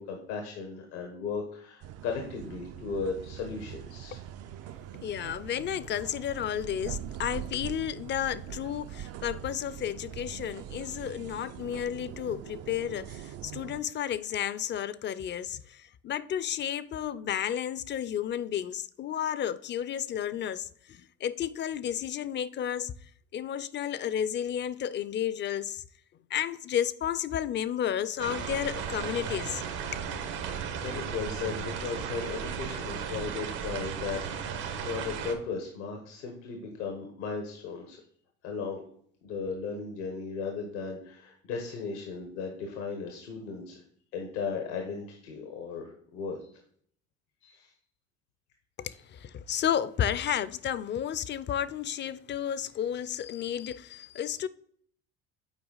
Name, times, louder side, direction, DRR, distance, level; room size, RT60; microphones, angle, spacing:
voice 1, 0.0-4.2 30.4-38.0 38.4-38.8 39.2-43.8 44.1-46.5 47.4-47.7 48.8-48.9, left 5 dB, 85° left, 1.3 m, -36 dB
sound 1, 1.8-13.8, right 11 dB, 50° right, 0.4 m, -42 dB
voice 2, 5.0-22.9 23.3-25.8 26.3-29.6 48.8-54.5, left 9 dB, 35° left, 0.4 m, -32 dB
sound 2, 28.2-35.3, right 7 dB, 80° right, 1.2 m, -35 dB
8.0 x 4.6 x 3.9 m
supercardioid pair, 85°, 32 cm